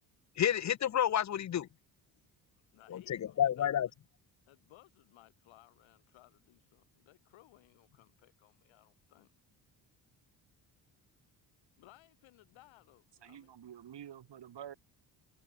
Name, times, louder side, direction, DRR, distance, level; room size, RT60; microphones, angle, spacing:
voice 1, 0.4-1.6 2.9-3.9, left 10 dB, 40° left, 0.6 m, -30 dB
voice 2, 2.7-3.7 4.5-9.3 11.8-13.5, left 17 dB, 90° left, 2.9 m, -61 dB
voice 3, 13.2-14.7, right 10 dB, 60° right, 3.5 m, -48 dB
cardioid pair, 75°, 46 cm